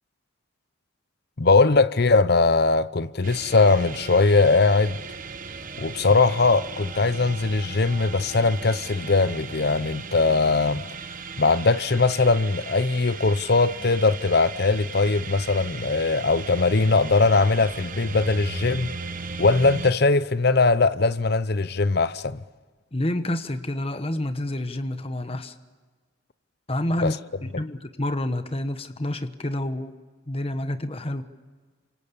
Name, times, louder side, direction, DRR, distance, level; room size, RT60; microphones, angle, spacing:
voice 1, 1.4-5.0 5.8-10.9 11.4-18.9 19.4-22.4 27.0-27.1, left 3 dB, 50° left, 0.8 m, -20 dB
sound 1, 3.2-19.9, right 5 dB, 40° right, 1.2 m, -37 dB
voice 2, 22.9-25.6 26.7-27.2 27.6-29.9 30.3-31.2, left 1 dB, 30° left, 1.1 m, -28 dB
28.0 x 25.5 x 8.4 m
head